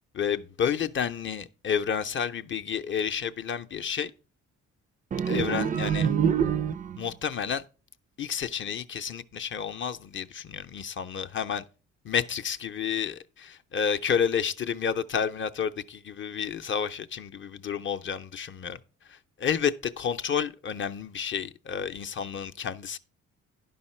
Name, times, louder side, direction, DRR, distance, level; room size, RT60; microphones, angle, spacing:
voice 1, 0.1-4.1 5.1-6.1 7.0-7.6 8.2-11.6 12.0-18.8 19.1-23.0, left 7 dB, 40° left, 0.6 m, -30 dB
sound 1, 5.1-7.1, right 8 dB, 25° right, 0.4 m, -26 dB
10.5 x 5.5 x 4.3 m
cardioid pair, 90°, 30 cm